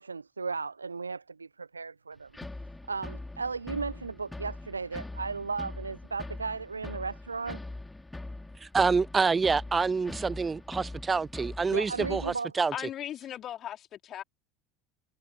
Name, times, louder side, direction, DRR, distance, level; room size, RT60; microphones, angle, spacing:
voice 1, 0.0-2.3 2.9-7.6 11.7-12.5, right 4 dB, 80° right, 0.8 m, -35 dB
sound 1, 2.3-12.4, left 2 dB, 10° left, 5.6 m, -42 dB
voice 2, 8.6-12.7, right 4 dB, 20° right, 0.6 m, -27 dB
voice 3, 12.7-14.2, left 11 dB, 40° left, 3.8 m, -38 dB
figure-of-eight pair, 75°, 0 cm